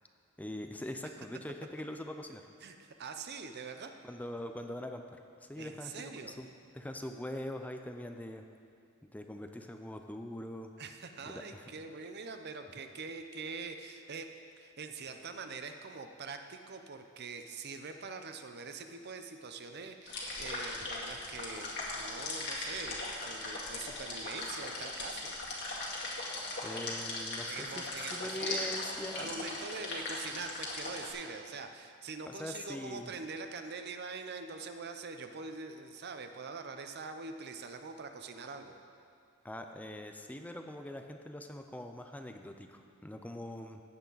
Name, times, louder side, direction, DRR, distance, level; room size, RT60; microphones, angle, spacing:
voice 1, 0.4-2.4 4.0-6.5 6.7-8.4 9.0-10.7 11.2-11.7 26.6-29.3 32.3-33.1 39.4-43.8, left 1 dB, 5° left, 5 dB, 0.5 m, -42 dB
voice 2, 2.6-3.9 5.6-6.4 10.8-14.3 14.6-25.3 27.4-28.7 29.2-38.7, right 4 dB, 50° right, 7 dB, 0.7 m, -44 dB
sound 1, 20.1-31.1, left 2 dB, 60° left, 2.1 m, -39 dB
15.5 x 8.3 x 4.0 m, 2.4 s
head